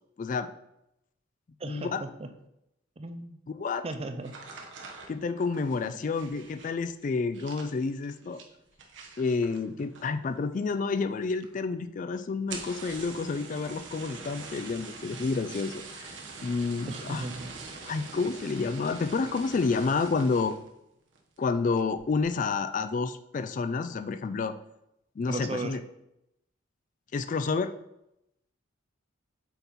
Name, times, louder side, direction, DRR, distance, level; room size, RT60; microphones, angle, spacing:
voice 1, 0.2-0.5 1.6-2.0 3.5-3.8 5.1-8.4 9.2-17.2 17.8-20.6 21.4-24.5 25.2-25.8 27.1-27.7, left 4 dB, 40° left, 11 dB, 0.3 m, -29 dB
voice 2, 1.6-2.3 3.0-3.4 3.8-4.3 5.8-6.0 16.9-17.5 25.3-25.8, right 2 dB, 30° right, 8 dB, 0.5 m, -36 dB
sound 1, 4.2-10.3 10.6-11.1 11.4-11.5 11.8-11.9 12.3-20.7 21.1-21.5 21.9-22.3, right 4 dB, 65° right, 1.1 m, -44 dB
7.9 x 4.2 x 4.2 m, 0.83 s
head